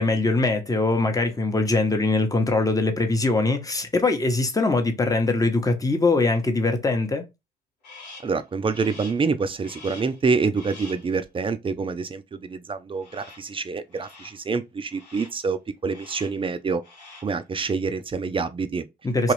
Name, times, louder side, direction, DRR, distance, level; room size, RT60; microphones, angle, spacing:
voice 1, 0.0-7.3 19.0-19.3, left 3 dB, 15° left, 0.9 m, -22 dB
Crow, 7.8-8.4 8.7-9.3 9.6-10.2 10.5-11.1 13.0-13.5 13.9-14.4 14.9-15.4 15.9-16.4 16.8-17.4, left 3 dB, 85° left, 1.1 m, -45 dB
voice 2, 8.2-16.8 17.2-18.8 19.2-19.3, right 4 dB, 25° right, 0.5 m, -26 dB
3.0 x 2.4 x 3.1 m
hypercardioid pair, 45°, 21 cm